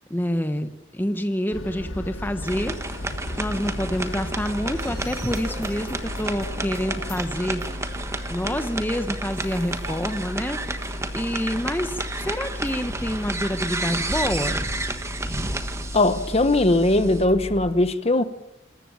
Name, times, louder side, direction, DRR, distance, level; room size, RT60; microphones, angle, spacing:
voice 1, 0.1-2.8 3.4-7.6 8.3-14.7, equal, 10° left, 1.0 m, -27 dB
sound 1, 1.5-17.7, left 1 dB, 85° left, 1.6 m, -35 dB
sound 2, 2.4-17.2, right 2 dB, 15° right, 1.4 m, -32 dB
sound 3, 4.4-11.2, right 3 dB, 30° right, 3.3 m, -45 dB
voice 2, 15.9-18.2, left 2 dB, 30° left, 1.1 m, -20 dB
26.0 x 14.5 x 8.8 m
head